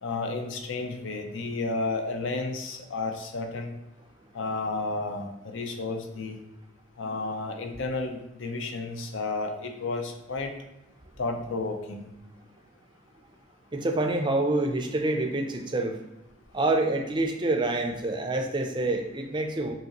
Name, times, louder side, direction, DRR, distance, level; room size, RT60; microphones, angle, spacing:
voice 1, 0.0-3.7 4.3-6.4 7.0-10.5 11.2-12.1, left 3 dB, 75° left, 4 dB, 0.6 m, -32 dB
voice 2, 13.7-16.0 16.5-19.7, right 2 dB, 25° right, 4 dB, 0.4 m, -27 dB
5.2 x 2.9 x 2.9 m, 0.93 s
head